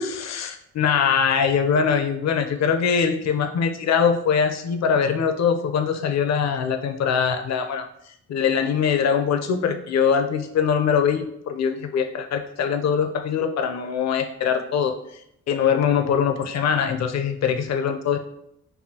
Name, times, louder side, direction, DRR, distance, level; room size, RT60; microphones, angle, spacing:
voice 1, 0.0-7.9 8.3-14.9 15.5-18.2, left 7 dB, 60° left, 7 dB, 0.5 m, -22 dB
5.4 x 2.3 x 2.8 m, 0.74 s
cardioid pair, 95°, 31 cm